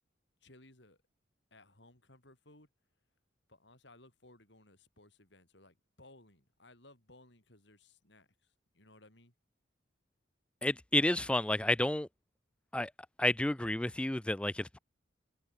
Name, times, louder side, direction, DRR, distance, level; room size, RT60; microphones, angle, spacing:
voice 1, 0.4-1.0 1.5-2.7 3.5-9.3, left 2 dB, 65° left, 7.3 m, -60 dB
voice 2, 10.6-12.1 12.7-12.9 13.2-14.8, left 1 dB, 5° left, 0.3 m, -30 dB
head